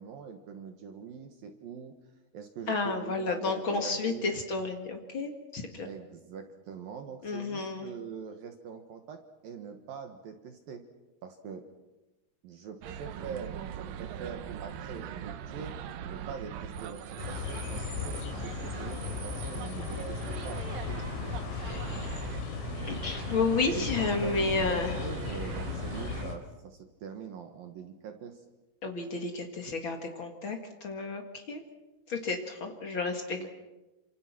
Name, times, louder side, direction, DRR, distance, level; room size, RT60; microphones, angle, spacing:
voice 1, 0.0-2.0 2.3-4.3 5.8-10.8 11.2-11.7 12.4-15.8 16.0-20.6 21.4-22.1 23.7-28.5 33.4-33.5, right 6 dB, 65° right, 6 dB, 2.5 m, -43 dB
voice 2, 2.7-5.9 7.2-7.9 21.5-22.1 22.8-25.0 28.8-31.6 32.1-33.5, left 3 dB, 70° left, 4 dB, 1.1 m, -32 dB
sound 1, 12.8-26.2, right 9 dB, 90° right, 1.9 m, -41 dB
sound 2, 17.2-26.4, left 6 dB, 90° left, 5.7 m, -37 dB
28.0 x 26.5 x 6.1 m, 1.1 s
omnidirectional pair, 5.7 m